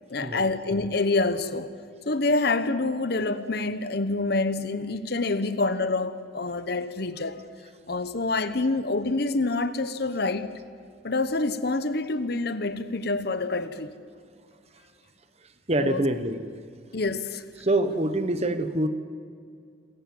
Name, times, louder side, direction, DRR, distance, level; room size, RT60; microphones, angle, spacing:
voice 1, 0.1-1.7 2.1-7.4 7.9-10.5 11.0-13.9 15.8-16.0 16.9-17.4, left 3 dB, 55° left, 1.0 m, -27 dB
voice 2, 15.7-16.4 17.6-18.9, right 1 dB, 35° right, 1.2 m, -25 dB
27.0 x 14.5 x 7.8 m
head